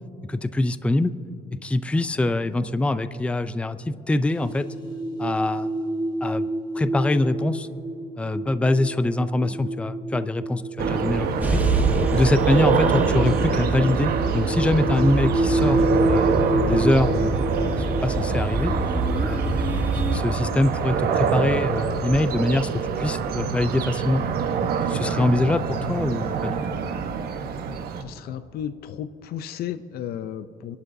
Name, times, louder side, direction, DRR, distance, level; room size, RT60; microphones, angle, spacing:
voice 1, 0.3-1.1 1.5-4.6 5.2-5.7 6.2-6.5 6.7-7.7 8.2-11.6 12.1-16.3 16.7-17.6 18.0-18.7 19.2-19.4 20.1-24.2 24.9-26.6, left 2 dB, 5° left, 13 dB, 0.4 m, -24 dB
sound 1, 4.3-20.6, right 1 dB, 30° left, 3.4 m, -29 dB
sound 2, 10.8-28.0, right 5 dB, 65° right, 1.1 m, -25 dB
sound 3, 11.4-20.2, right 2 dB, 10° right, 1.3 m, -27 dB
voice 2, 28.0-30.8, left 10 dB, 65° left, 11 dB, 0.5 m, -33 dB
27.5 x 11.0 x 2.7 m, 2.7 s
cardioid pair, 110°, 17 cm